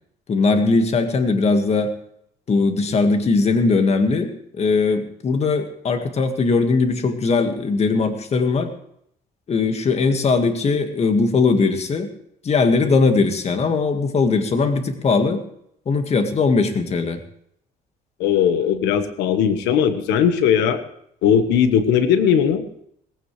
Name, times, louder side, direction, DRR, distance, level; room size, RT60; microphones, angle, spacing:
voice 1, 0.3-1.9 2.5-8.7 9.5-12.1 12.4-15.4 15.9-17.2, left 4 dB, 40° left, 6 dB, 1.9 m, -19 dB
voice 2, 18.2-20.8 21.2-22.6, left 8 dB, 90° left, 9 dB, 1.4 m, -18 dB
18.5 x 16.0 x 3.3 m, 0.71 s
cardioid pair, 110°, 17 cm